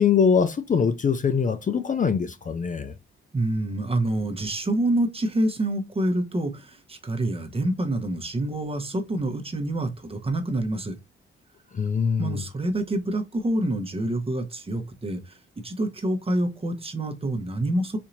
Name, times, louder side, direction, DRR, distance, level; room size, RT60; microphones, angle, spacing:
voice 1, 0.0-2.9 11.7-12.4, left 6 dB, 40° left, 0.5 m, -23 dB
voice 2, 3.3-11.0 12.2-15.4 15.6-18.0, right 1 dB, 25° right, 1.0 m, -27 dB
4.3 x 2.7 x 2.5 m
cardioid pair, 70°, 21 cm